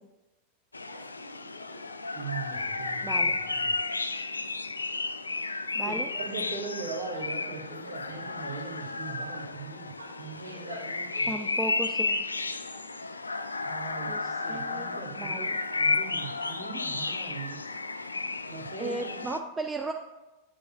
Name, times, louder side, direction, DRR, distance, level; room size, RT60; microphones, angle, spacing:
sound 1, 0.7-19.4, left 3 dB, 80° left, 0.3 m, -32 dB
sound 2, 0.9-2.0 6.9-9.6 9.9-11.7 15.2-17.0, right 1 dB, 85° right, 0.9 m, -48 dB
voice 1, 2.1-3.7 5.8-9.9 10.2-11.3 13.6-14.1 14.4-15.4 15.7-17.6 18.5-19.2, right 4 dB, 50° right, -1 dB, 2.0 m, -40 dB
voice 2, 3.0-3.4 5.7-6.1 11.3-12.2 14.1-15.6 18.8-19.9, right 2 dB, 15° right, 5 dB, 0.4 m, -36 dB
8.7 x 6.8 x 2.5 m, 1.0 s
figure-of-eight pair, 90°, 0 cm